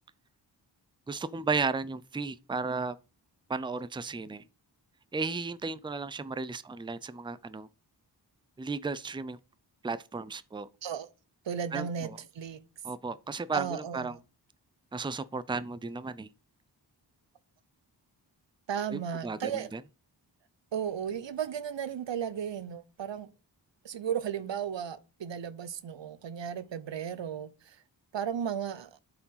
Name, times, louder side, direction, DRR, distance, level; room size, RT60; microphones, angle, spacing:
voice 1, 1.1-3.0 3.5-4.4 5.1-7.7 8.6-9.4 9.8-10.7 11.7-12.2 12.8-14.2 14.9-16.3 18.9-19.8, right 4 dB, 10° right, 0.5 m, -34 dB
voice 2, 11.4-12.6 13.5-14.2 18.7-19.7 20.7-23.3 23.8-27.8 28.1-28.9, right 8 dB, 85° right, 0.8 m, -35 dB
8.5 x 4.8 x 5.6 m
wide cardioid pair, 75°, 43 cm